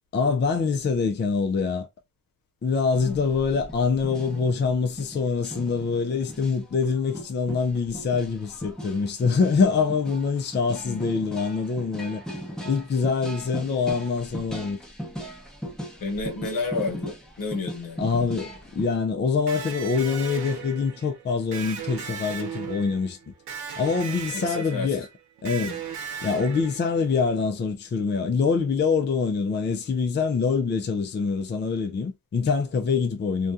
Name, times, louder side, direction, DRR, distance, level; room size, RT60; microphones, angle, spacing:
voice 1, 0.1-1.9 2.6-12.2 12.6-14.8 18.0-23.2 23.8-25.1 25.4-25.8 26.2-33.5, left 5 dB, 30° left, 0.5 m, -25 dB
sound 1, 2.9-18.9, equal, ahead, 0.8 m, -38 dB
voice 2, 16.0-18.1 24.3-25.0 25.6-25.8, left 3 dB, 65° left, 0.9 m, -31 dB
Electric guitar, 19.5-27.2, right 7 dB, 80° right, 0.8 m, -37 dB
2.3 x 2.2 x 2.5 m
cardioid pair, 80°, 37 cm